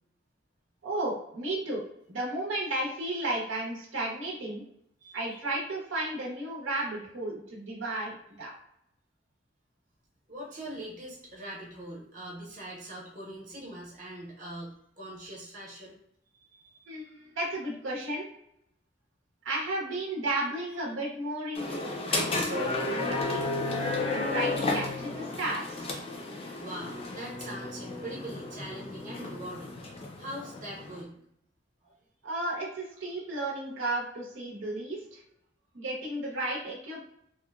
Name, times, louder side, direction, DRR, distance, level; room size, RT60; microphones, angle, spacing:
voice 1, 0.8-1.8 2.1-4.6 5.1-8.5 16.9-18.3 19.4-23.4 24.1-25.9 32.2-35.2 35.7-37.0, right 1 dB, 90° right, -3 dB, 0.8 m, -33 dB
voice 2, 10.3-15.9 16.4-17.1 26.6-31.2 31.8-31.9, right 1 dB, 40° right, -4 dB, 0.8 m, -42 dB
sound 1, 21.5-31.0, left 2 dB, 30° left, 0.4 m, -33 dB
2.9 x 2.1 x 2.2 m, 0.75 s
head